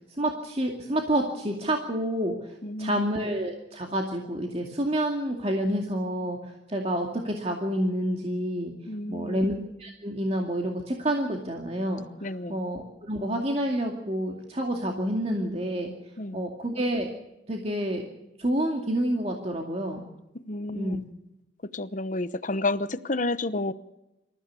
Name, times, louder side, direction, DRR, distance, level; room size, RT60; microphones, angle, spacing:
voice 1, 0.2-8.7 9.1-9.5 9.8-15.9 16.3-17.1 17.5-18.0 18.4-20.0 20.7-21.0, right 1 dB, 35° right, 2.3 m, -28 dB
voice 2, 2.6-3.0 8.9-9.4 12.2-12.6 16.2-16.4 20.5-21.0 21.7-23.7, left 2 dB, 45° left, 0.9 m, -30 dB
26.5 x 14.5 x 7.1 m
head